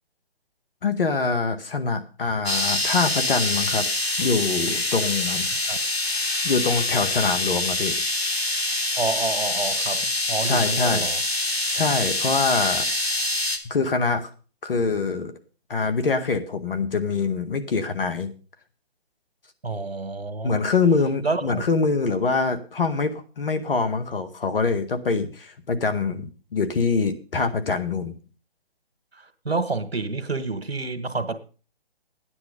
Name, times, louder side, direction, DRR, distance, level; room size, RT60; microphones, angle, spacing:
voice 1, 0.8-3.8 4.2-5.5 6.4-8.0 10.4-11.1 11.7-12.9 13.7-14.3 14.6-15.3 15.7-18.3 20.4-28.1, left 4 dB, 65° left, 2.0 m, -24 dB
sound 1, 2.5-13.6, left 2 dB, 85° left, 2.3 m, -25 dB
voice 2, 9.0-11.2 19.6-20.6 21.2-21.6 29.1-31.4, right 3 dB, 85° right, 1.7 m, -29 dB
12.0 x 9.8 x 5.3 m
figure-of-eight pair, 140°, 30 cm